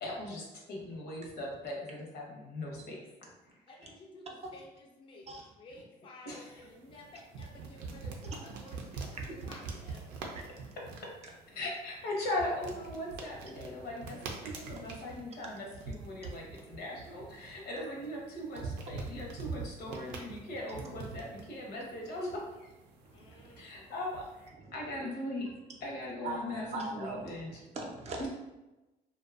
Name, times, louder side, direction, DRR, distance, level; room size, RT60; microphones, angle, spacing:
voice 1, 0.0-3.0 6.3-6.4 11.5-22.7 23.6-25.5 25.8-27.6 28.2-28.3, left 1 dB, 70° left, -2 dB, 0.8 m, -39 dB
voice 2, 3.7-10.2 23.1-23.9, left 2 dB, 30° left, 0 dB, 0.4 m, -53 dB
sound 1, 6.3-24.5, right 4 dB, 90° right, 0.5 m, -45 dB
voice 3, 23.0-23.6 24.6-24.7 26.2-28.3, right 2 dB, 40° right, 0 dB, 0.5 m, -41 dB
2.5 x 2.2 x 2.3 m, 1.0 s
cardioid pair, 110°, 17 cm